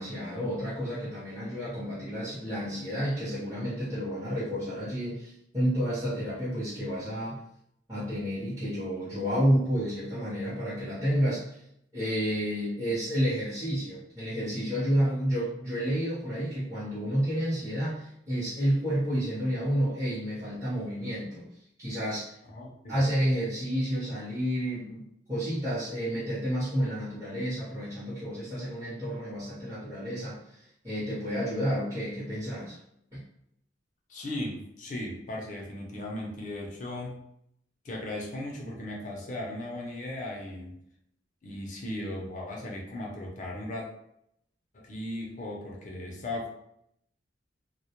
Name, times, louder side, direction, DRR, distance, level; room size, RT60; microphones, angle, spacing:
voice 1, 0.0-7.4 7.9-11.6 11.9-21.5 21.8-22.4 22.9-30.4 30.8-32.8 33.1-33.2, equal, 15° right, -13 dB, 0.7 m, -30 dB
voice 2, 22.5-23.0 34.1-37.2 37.8-40.8 41.4-43.9 44.7-46.5, left 1 dB, 45° left, -1 dB, 0.5 m, -37 dB
2.1 x 2.0 x 2.8 m, 0.74 s
head